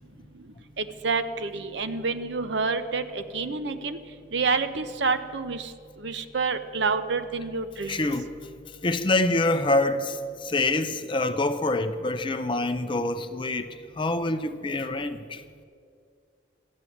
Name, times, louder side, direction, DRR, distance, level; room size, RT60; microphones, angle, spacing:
voice 1, 0.8-4.0 4.3-5.7 6.0-8.1, right 4 dB, 65° right, 0.7 m, -28 dB
voice 2, 7.9-8.5 8.8-13.7 14.0-15.4, left 2 dB, 25° left, 0.5 m, -26 dB
14.0 x 9.3 x 7.2 m
head